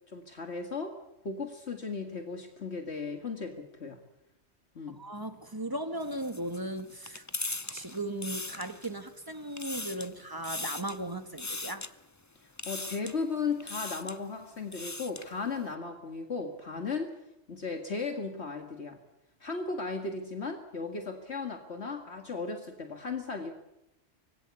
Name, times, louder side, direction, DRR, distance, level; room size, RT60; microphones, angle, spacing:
voice 1, 0.1-1.0 1.2-4.0 4.8-5.0 12.7-17.2 17.5-19.0 19.4-23.5, left 4 dB, 65° left, 2.3 m, -36 dB
voice 2, 4.9-7.2 7.7-11.9, right 1 dB, 20° right, 1.8 m, -37 dB
sound 1, 6.0-9.1 9.4-10.1 10.4-11.0 11.4-11.9 12.6-13.2 13.6-14.2 14.6-15.3, left 2 dB, 15° left, 0.8 m, -39 dB
25.0 x 20.5 x 8.4 m
omnidirectional pair, 1.2 m